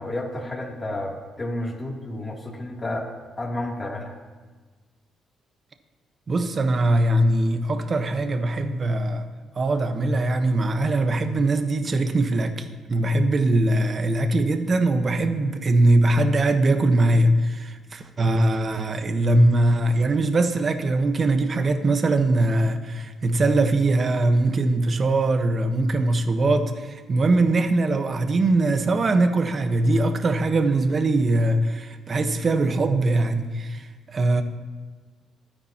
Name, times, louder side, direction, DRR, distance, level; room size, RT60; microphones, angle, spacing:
voice 1, 0.0-3.1 3.4-4.1, left 1 dB, 25° left, -2 dB, 2.8 m, -31 dB
voice 2, 6.3-9.2 9.5-34.4, right 2 dB, 40° right, 7 dB, 1.1 m, -21 dB
26.5 x 10.0 x 2.9 m, 1.4 s
cardioid pair, 90°, 0 cm